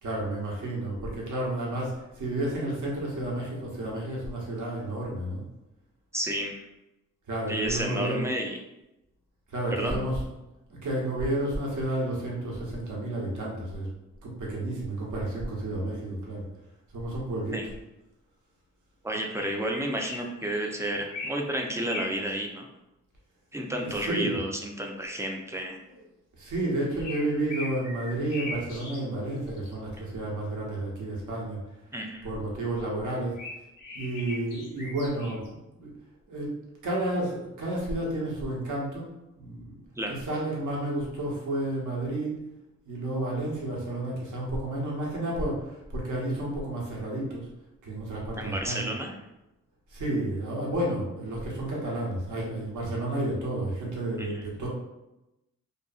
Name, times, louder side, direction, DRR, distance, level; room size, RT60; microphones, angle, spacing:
voice 1, 0.0-5.4 7.3-8.2 9.5-10.3 10.8-13.9 14.2-16.4 16.9-17.7 23.7-24.4 25.8-26.0 26.4-31.6 32.2-33.4 33.9-35.9 36.3-36.6 36.8-39.1 39.4-39.8 40.1-42.3 42.9-47.5 47.8-48.9 49.9-54.7, right 1 dB, 70° right, -3 dB, 0.9 m, -31 dB
voice 2, 6.1-6.6 7.5-8.6 9.7-10.0 17.5-17.7 19.0-22.7 23.5-25.8 31.9-32.3 40.0-40.2 48.4-49.1 54.2-54.4, right 1 dB, 10° right, 1 dB, 0.3 m, -31 dB
sound 1, 19.3-20.7 21.1-22.2 27.0-29.0 29.5-29.7 33.1-35.5, left 2 dB, 85° left, 0.8 m, -40 dB
2.6 x 2.5 x 2.3 m, 0.94 s
cardioid pair, 105°, 31 cm